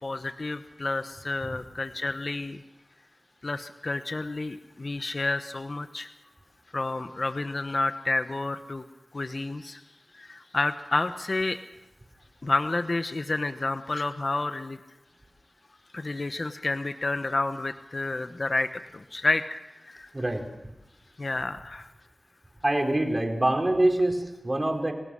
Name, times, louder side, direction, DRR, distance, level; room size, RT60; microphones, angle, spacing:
voice 1, 0.0-2.6 3.4-6.1 6.7-8.8 9.1-9.8 10.1-11.6 12.4-14.8 15.9-19.6 19.8-20.1 21.2-21.9, left 2 dB, 55° left, 9 dB, 1.0 m, -30 dB
voice 2, 20.1-20.4 22.6-24.9, right 1 dB, 30° right, 2 dB, 4.3 m, -25 dB
28.5 x 18.0 x 6.4 m, 0.98 s
wide cardioid pair, 65°, 0 cm